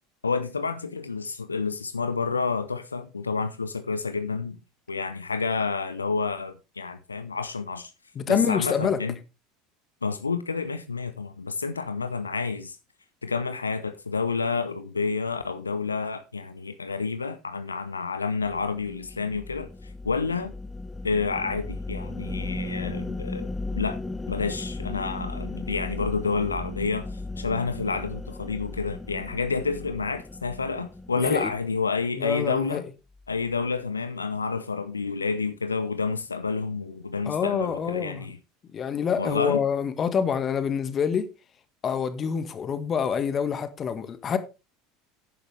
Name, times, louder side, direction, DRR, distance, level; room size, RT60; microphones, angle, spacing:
voice 1, 0.2-4.6 4.9-7.9 8.3-9.2 10.0-12.8 13.2-20.5 21.0-23.5 23.7-24.0 24.3-32.8 33.3-38.4 39.2-39.6, left 4 dB, 85° left, 0.7 m, -29 dB
voice 2, 8.1-9.0 31.1-31.5 32.2-32.8 37.2-38.2 38.7-41.3 41.8-44.4, left 7 dB, 30° left, 1.6 m, -26 dB
sound 1, 18.4-31.9, left 2 dB, 15° left, 1.0 m, -36 dB
11.5 x 9.9 x 3.3 m
figure-of-eight pair, 75°, 0 cm